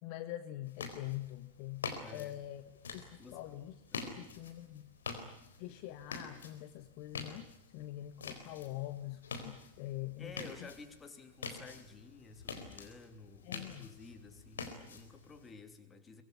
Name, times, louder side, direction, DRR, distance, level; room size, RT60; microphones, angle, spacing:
voice 1, 0.0-2.6 2.9-4.9 5.6-7.5 7.7-10.5 13.4-13.9, left 14 dB, 45° left, 10 dB, 1.4 m, -44 dB
sound 1, 0.6-15.5, left 5 dB, 65° left, 4.1 m, -47 dB
voice 2, 2.0-2.4 3.2-3.4 3.9-4.3 10.2-16.2, left 4 dB, 15° left, 7 dB, 2.9 m, -52 dB
24.0 x 22.0 x 9.5 m, 0.77 s
figure-of-eight pair, 90°, 0 cm